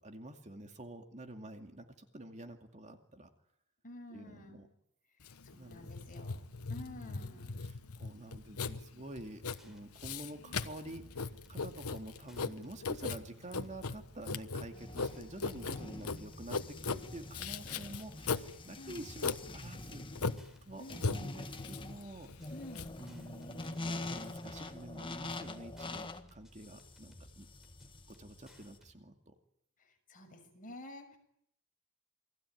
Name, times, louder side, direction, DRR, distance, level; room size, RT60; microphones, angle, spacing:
voice 1, 0.0-3.3 4.1-4.7 5.5-5.9 6.7-20.0 20.6-22.5 23.0-27.5 28.1-29.3, right 1 dB, 30° right, 5 dB, 2.3 m, -49 dB
voice 2, 3.8-4.7 5.2-7.7 18.8-19.1 20.8-21.1 22.5-22.9 29.8-31.2, left 1 dB, 40° left, 3 dB, 6.4 m, -51 dB
Writing, 5.2-24.4, left 4 dB, 75° left, 1.3 m, -39 dB
sound 1, 9.5-28.9, equal, ahead, 4.7 m, -60 dB
sound 2, 14.7-28.8, left 2 dB, 20° left, 1.6 m, -45 dB
29.0 x 20.0 x 9.3 m, 0.72 s
head